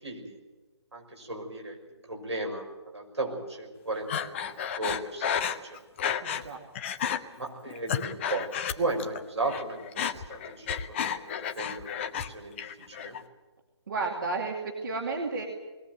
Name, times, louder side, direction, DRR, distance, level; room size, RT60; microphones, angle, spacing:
voice 1, 0.0-0.4 0.9-1.8 2.1-2.7 2.9-4.3 4.7-5.8 7.4-8.5 8.8-13.2, right 2 dB, 75° right, 1 dB, 5.9 m, -35 dB
Breathing, 4.1-6.5 6.8-7.2 7.7-9.2 9.5-12.3 12.6-13.2, left 8 dB, 25° left, 0.9 m, -32 dB
voice 2, 6.2-6.6 13.9-15.5, right 3 dB, 45° right, 1 dB, 2.5 m, -32 dB
21.0 x 16.5 x 9.1 m, 1.2 s
figure-of-eight pair, 140°, 15 cm